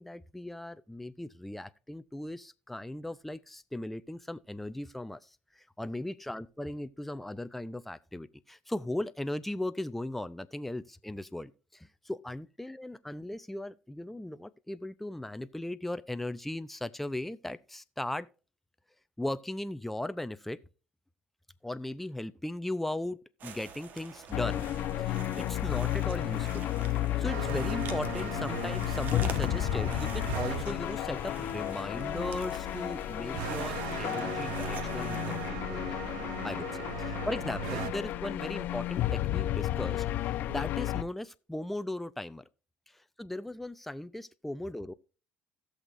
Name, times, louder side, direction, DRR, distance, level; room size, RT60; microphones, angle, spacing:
voice 1, 0.0-18.3 19.2-20.6 21.6-24.7 25.0-35.9 36.4-42.4 42.9-44.9, left 1 dB, 5° left, 0.6 m, -38 dB
sound 1, 23.4-35.5, right 6 dB, 55° right, 1.3 m, -47 dB
sound 2, 24.3-41.0, left 13 dB, 65° left, 0.7 m, -32 dB
sound 3, 27.2-30.6 33.3-37.9, right 13 dB, 90° right, 0.5 m, -39 dB
17.0 x 6.5 x 2.6 m
supercardioid pair, 85°, 3 cm